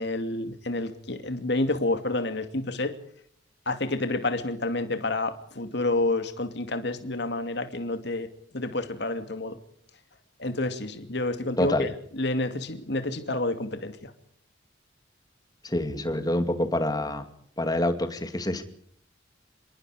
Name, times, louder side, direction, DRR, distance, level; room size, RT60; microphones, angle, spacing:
voice 1, 0.0-3.0 3.7-8.3 8.5-9.6 10.4-11.9 12.1-14.1, left 2 dB, 60° left, 2.6 m, -29 dB
voice 2, 11.6-11.9 15.6-17.2 17.6-18.6, left 1 dB, 20° left, 2.4 m, -26 dB
27.0 x 22.5 x 5.1 m
head